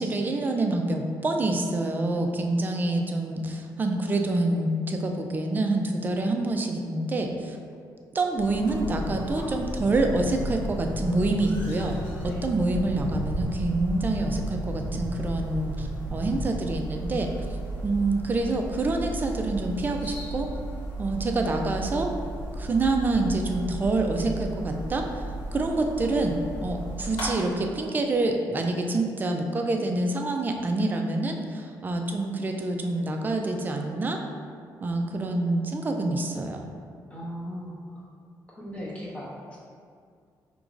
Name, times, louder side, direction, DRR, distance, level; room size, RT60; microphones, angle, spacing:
voice 1, 0.0-7.6 8.1-12.0 12.2-17.3 17.8-20.5 21.0-22.1 22.5-34.2 34.8-36.6, right 2 dB, 25° right, 3 dB, 0.3 m, -27 dB
sound 1, 8.4-27.3, right 1 dB, 75° left, 1.3 m, -35 dB
sound 2, 8.7-16.4, equal, 45° right, 0.7 m, -37 dB
voice 2, 37.1-38.0 38.5-39.7, equal, 15° left, -5 dB, 0.7 m, -38 dB
4.9 x 3.0 x 2.5 m, 2.2 s
cardioid pair, 145°, 8 cm